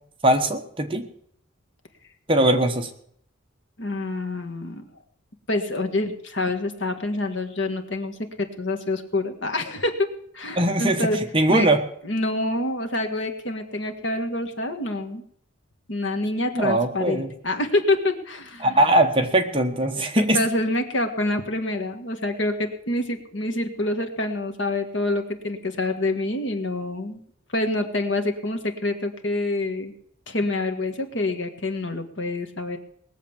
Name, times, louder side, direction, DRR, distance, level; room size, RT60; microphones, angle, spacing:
voice 1, 0.2-1.1 2.3-2.9 10.5-11.8 16.5-17.3 18.6-20.4, right 1 dB, 25° right, 4 dB, 1.3 m, -21 dB
voice 2, 3.8-4.8 5.5-10.1 10.3-11.2 11.5-11.7 12.0-15.2 15.9-18.7 20.0-27.2 27.5-29.9 30.3-32.8, left 2 dB, 60° left, 5 dB, 1.7 m, -27 dB
19.5 x 7.3 x 7.2 m, 0.68 s
head